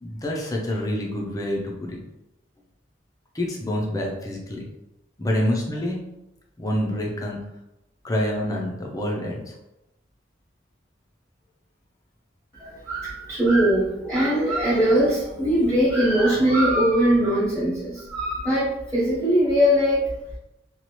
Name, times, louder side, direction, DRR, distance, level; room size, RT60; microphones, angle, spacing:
voice 1, 0.0-2.0 3.3-4.7 5.2-6.0 6.6-7.4 8.0-9.6, left 1 dB, 20° left, -1 dB, 0.5 m, -27 dB
voice 2, 12.5-20.1, equal, 10° right, -11 dB, 1.0 m, -21 dB
2.9 x 2.4 x 3.0 m, 0.91 s
head